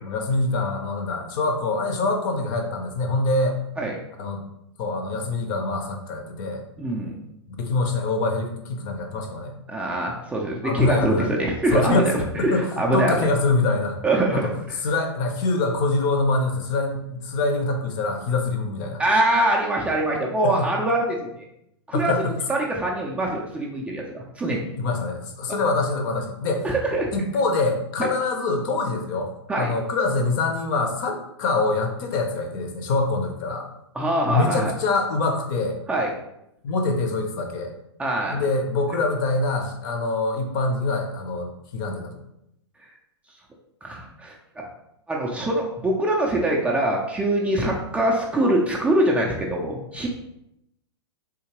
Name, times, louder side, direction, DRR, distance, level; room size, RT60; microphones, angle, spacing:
voice 1, 0.0-3.6 4.2-4.4 4.8-6.6 7.6-9.6 10.6-11.3 11.7-12.1 12.4-14.0 14.3-14.5 14.8-19.0 20.4-20.7 21.9-22.3 24.7-26.7 27.1-33.7 34.2-35.8 36.6-37.7 38.3-42.1, left 3 dB, 45° left, 4 dB, 0.7 m, -24 dB
voice 2, 6.8-7.2 9.7-13.1 14.0-14.5 19.0-21.3 21.9-22.1 22.5-24.6 26.6-27.1 28.0-28.1 29.5-29.7 33.9-34.7 35.9-36.1 38.0-38.4 43.8-44.4 45.1-50.1, right 1 dB, 10° right, -2 dB, 0.4 m, -23 dB
3.7 x 2.8 x 2.9 m, 0.82 s
figure-of-eight pair, 105°, 15 cm